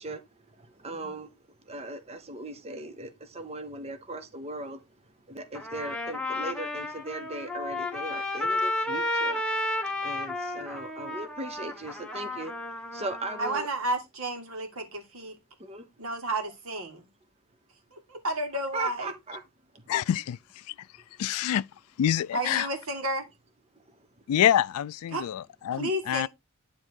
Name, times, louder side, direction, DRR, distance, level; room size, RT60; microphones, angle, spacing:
voice 1, 0.0-9.5 9.8-13.7 15.6-15.9 18.7-19.4 19.7-19.9 23.7-24.2, right 2 dB, 30° right, 0.9 m, -39 dB
Trumpet, 5.5-13.6, left 2 dB, 5° left, 1.1 m, -32 dB
voice 2, 13.4-15.4 16.0-17.1 17.9-19.1 22.3-23.3 25.1-25.3 25.7-26.3, right 1 dB, 65° right, 2.1 m, -32 dB
voice 3, 19.9-20.4 20.7-20.8 21.2-21.6 22.0-22.7 24.3-26.3, left 10 dB, 80° left, 0.3 m, -26 dB
9.8 x 3.5 x 4.5 m
head